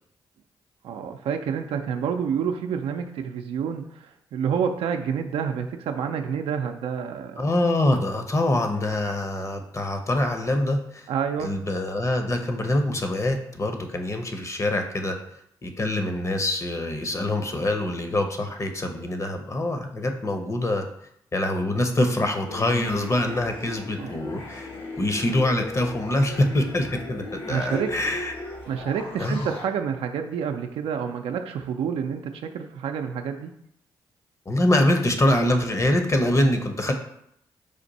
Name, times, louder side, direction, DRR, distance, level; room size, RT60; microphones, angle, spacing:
voice 1, 0.8-7.4 11.1-11.5 24.0-24.1 27.5-27.9 28.7-33.5, right 7 dB, 75° right, 6 dB, 0.5 m, -28 dB
voice 2, 7.4-11.1 11.4-15.2 15.6-20.9 21.3-24.7 25.0-28.3 29.2-29.5 34.5-36.9, left 1 dB, 30° left, 5 dB, 0.8 m, -24 dB
sound 1, 22.5-29.7, left 2 dB, 65° left, 1.2 m, -37 dB
5.0 x 2.5 x 4.0 m, 0.75 s
hypercardioid pair, 45°, 10 cm